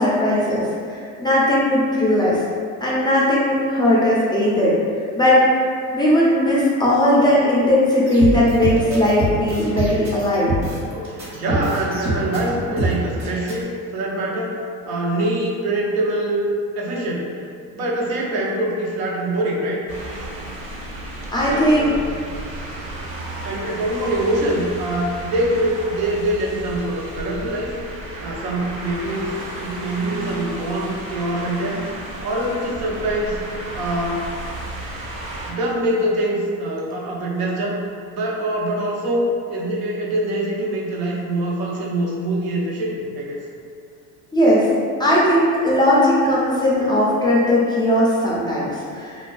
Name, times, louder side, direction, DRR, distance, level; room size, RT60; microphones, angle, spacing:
voice 1, 0.0-2.4 2.8-4.8 5.2-5.4 5.9-10.5 21.3-21.9 44.3-44.7 45.0-49.3, left 1 dB, 10° left, -7 dB, 0.3 m, -18 dB
sound 1, 8.1-13.5, right 1 dB, 75° right, 1.1 m, -25 dB
voice 2, 11.0-14.6 14.8-16.4 16.8-17.3 17.7-19.8 21.5-22.3 22.6-22.7 23.4-27.8 28.2-31.9 32.2-33.4 33.7-34.3 35.5-37.8 38.1-43.4, right 1 dB, 90° right, -4 dB, 0.6 m, -24 dB
sound 2, 19.9-35.5, right 1 dB, 45° right, 0.6 m, -33 dB
2.3 x 2.3 x 2.4 m, 2.3 s
supercardioid pair, 95°, 41 cm